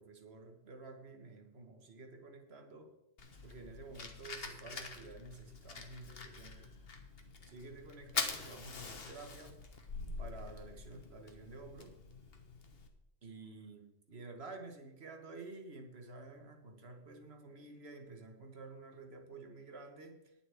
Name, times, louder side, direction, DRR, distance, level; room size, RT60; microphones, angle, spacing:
voice 1, 0.0-2.9 3.4-6.7 7.5-9.6 10.2-12.0 13.2-20.3, right 3 dB, 50° right, 5 dB, 1.7 m, -51 dB
Fire, 3.2-12.9, left 4 dB, 45° left, 1.4 m, -45 dB
21.0 x 7.4 x 3.5 m, 0.88 s
omnidirectional pair, 1.4 m